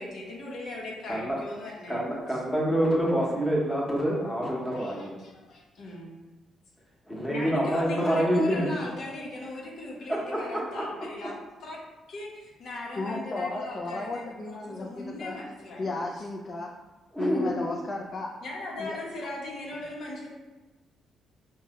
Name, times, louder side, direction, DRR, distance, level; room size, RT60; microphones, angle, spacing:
voice 1, 0.0-2.0 2.3-2.4 4.7-6.1 7.3-11.3 11.6-11.8 12.1-15.8 17.3-17.5 18.4-20.3, left 2 dB, 70° left, -3 dB, 0.9 m, -39 dB
voice 2, 1.9-5.2 7.1-8.7 17.1-17.5, equal, 10° left, -4 dB, 0.9 m, -26 dB
voice 3, 12.9-15.4 15.8-16.7 17.2-18.3 18.8-19.0, left 2 dB, 40° left, -1 dB, 0.4 m, -33 dB
4.5 x 2.2 x 2.9 m, 1.2 s
cardioid pair, 90°, 0 cm